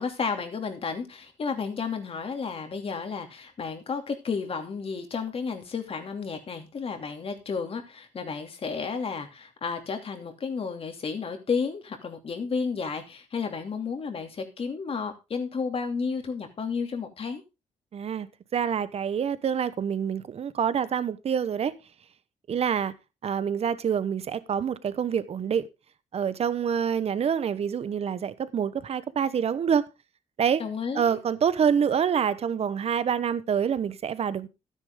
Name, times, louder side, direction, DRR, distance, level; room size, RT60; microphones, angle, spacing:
voice 1, 0.0-17.4 30.6-31.2, left 5 dB, 50° left, 2.8 m, -32 dB
voice 2, 17.9-21.7 22.5-22.9 23.2-25.7 26.1-29.9 30.4-30.6 30.9-34.5, right 7 dB, 55° right, 1.1 m, -26 dB
12.5 x 9.9 x 3.8 m
cardioid pair, 95°, 13 cm